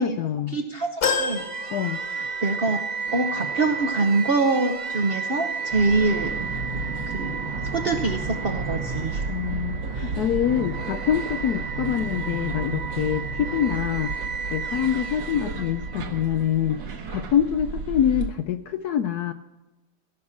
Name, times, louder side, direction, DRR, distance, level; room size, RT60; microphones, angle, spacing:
voice 1, 0.0-0.6 1.7-2.0 9.3-14.1 14.5-16.8 17.1-19.3, left 9 dB, 70° left, 9 dB, 0.9 m, -25 dB
voice 2, 0.5-1.5 2.4-2.8 3.1-6.4 7.1-7.4 7.6-9.2 10.0-10.1, right 3 dB, 50° right, 4 dB, 0.7 m, -24 dB
sound 1, 1.0-2.7 3.1-3.2 4.4-4.5, left 6 dB, 55° left, 2.5 m, -29 dB
sound 2, 1.4-16.5, right 5 dB, 85° right, 0.3 m, -32 dB
sound 3, 5.7-18.3, right 4 dB, 70° right, 1.8 m, -34 dB
16.5 x 6.4 x 7.2 m, 1.1 s
omnidirectional pair, 2.2 m